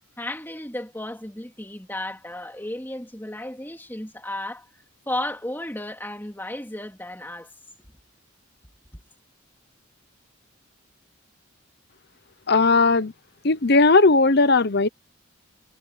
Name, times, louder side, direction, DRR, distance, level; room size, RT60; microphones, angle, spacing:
voice 1, 0.2-4.7 5.1-7.5, left 1 dB, 10° left, 3.0 m, -33 dB
voice 2, 12.5-13.1 13.4-14.9, left 3 dB, 50° left, 0.9 m, -17 dB
head